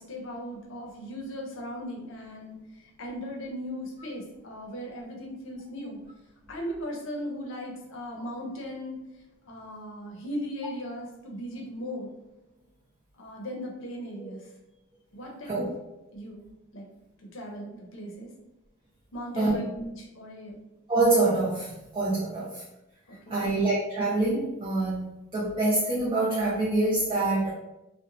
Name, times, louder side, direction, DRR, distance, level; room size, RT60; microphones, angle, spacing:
voice 1, 0.0-6.0 6.5-9.0 9.4-12.1 13.2-14.5 15.1-16.4 16.7-16.9 17.2-18.3 19.1-20.6 22.4-22.5 23.1-23.6, equal, 65° left, 0 dB, 0.6 m, -38 dB
voice 2, 20.9-22.6 23.3-27.5, right 2 dB, 25° right, -6 dB, 0.4 m, -25 dB
2.8 x 2.1 x 2.6 m, 0.92 s
head